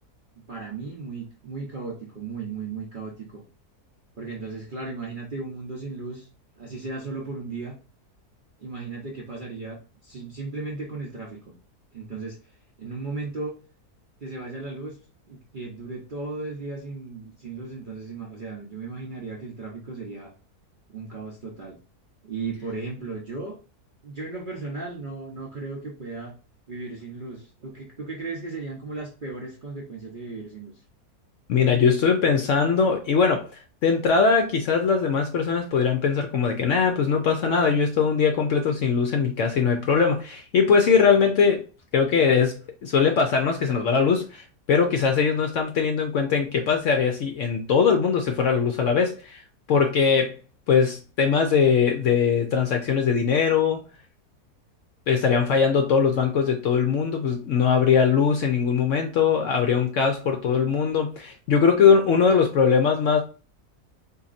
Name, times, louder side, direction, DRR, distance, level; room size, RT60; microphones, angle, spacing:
voice 1, 0.5-3.4 4.2-6.3 6.6-7.7 8.6-11.5 11.9-13.5 14.2-15.0 15.3-20.3 20.9-21.8 22.2-23.6 24.0-26.3 26.7-30.7 31.5-31.9, right 3 dB, 50° right, 0.6 m, -36 dB
voice 2, 31.5-41.6 41.9-49.4 49.7-50.4 50.7-53.8 55.1-63.2, left 6 dB, 70° left, 0.7 m, -21 dB
4.0 x 2.8 x 2.4 m
omnidirectional pair, 1.7 m